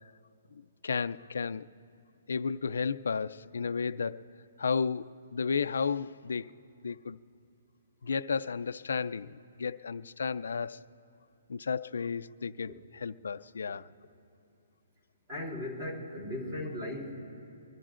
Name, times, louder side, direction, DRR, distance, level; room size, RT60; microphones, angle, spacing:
voice 1, 0.8-1.7 2.3-4.2 4.6-6.5 6.8-7.2 8.0-10.8 11.5-13.9, left 5 dB, 75° left, 0.4 m, -33 dB
voice 2, 15.3-17.2, left 1 dB, 20° right, 3.2 m, -37 dB
23.5 x 23.5 x 2.5 m
hypercardioid pair, 180°, 0 cm